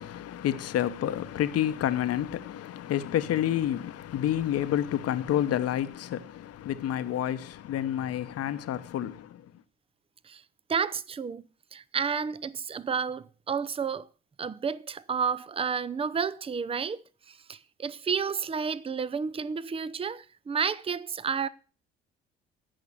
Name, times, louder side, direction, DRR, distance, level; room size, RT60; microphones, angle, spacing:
voice 1, 0.0-9.5, left 11 dB, 50° left, 1.0 m, -29 dB
voice 2, 10.7-11.4 11.7-14.1 14.4-21.5, right 6 dB, 20° right, 0.6 m, -31 dB
15.0 x 5.9 x 6.9 m
hypercardioid pair, 55°, 30 cm